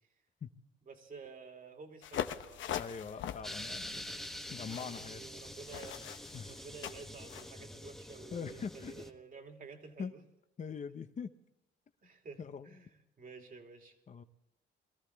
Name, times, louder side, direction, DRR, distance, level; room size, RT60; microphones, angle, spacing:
voice 1, 0.9-2.6 4.9-6.1 6.5-10.2 12.0-14.0, right 4 dB, 45° right, 4 dB, 2.6 m, -51 dB
sound 1, 2.0-7.5, left 10 dB, 75° left, 0.9 m, -42 dB
voice 2, 2.8-4.2 4.5-5.2 6.3-6.5 8.3-9.0 10.0-10.1 10.6-11.3 12.4-12.8 14.1-14.2, left 6 dB, 35° left, 9 dB, 0.9 m, -42 dB
sound 2, 3.4-9.1, left 1 dB, ahead, 1.2 m, -46 dB
22.5 x 14.0 x 3.5 m, 0.82 s
cardioid pair, 90°, 20 cm